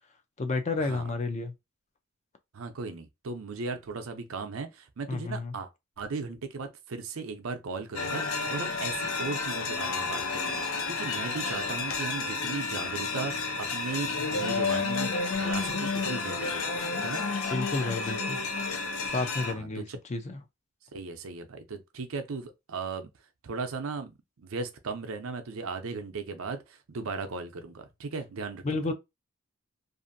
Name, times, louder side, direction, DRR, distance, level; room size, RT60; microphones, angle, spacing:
voice 1, 0.4-1.5 5.1-5.5 17.5-18.4 19.1-20.4 28.6-28.9, left 3 dB, 35° left, 0.5 m, -31 dB
voice 2, 2.5-5.7 6.0-15.1 15.4-16.7 17.0-17.2 19.4-20.0 20.9-23.1 23.4-28.6, right 4 dB, 90° right, 0.6 m, -37 dB
sound 1, 8.0-19.5, left 4 dB, 85° left, 0.6 m, -31 dB
2.7 x 2.5 x 2.6 m
head